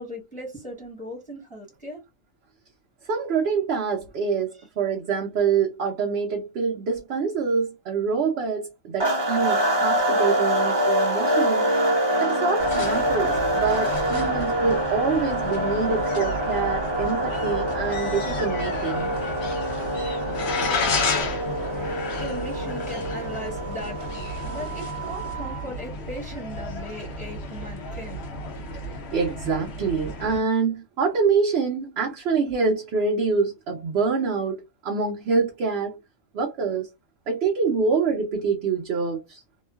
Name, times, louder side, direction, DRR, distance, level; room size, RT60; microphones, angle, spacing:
voice 1, 0.0-2.0 20.6-21.6 22.2-24.1 24.4-28.2, equal, 5° left, 1.1 m, -38 dB
voice 2, 3.1-11.7 12.2-19.1 21.7-21.9 29.1-36.0 36.3-36.9 37.3-39.4, right 5 dB, 60° right, 0.8 m, -26 dB
sound 1, 9.0-25.7, right 1 dB, 25° right, 0.6 m, -25 dB
sound 2, 12.6-30.4, left 2 dB, 60° left, 0.9 m, -33 dB
2.9 x 2.3 x 2.2 m
omnidirectional pair, 1.3 m